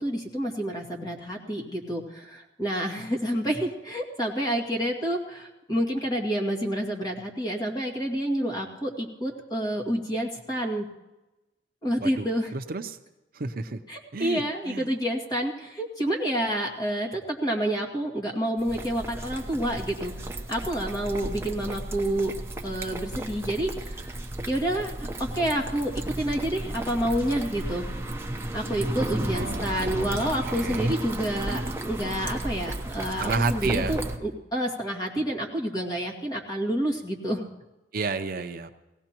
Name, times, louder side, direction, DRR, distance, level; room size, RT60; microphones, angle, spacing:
voice 1, 0.0-10.9 11.8-12.5 13.9-20.1 20.5-22.3 22.6-24.1 24.5-25.9 26.2-27.9 28.5-37.5, right 1 dB, 25° left, -1 dB, 2.1 m, -29 dB
voice 2, 12.0-13.0 13.3-13.8 14.1-14.9 29.3-31.0 33.2-34.0 37.9-38.7, right 3 dB, 55° right, 8 dB, 0.6 m, -31 dB
sound 1, 18.6-34.2, right 1 dB, 15° right, 0.9 m, -34 dB
19.0 x 16.5 x 3.0 m, 1.0 s
head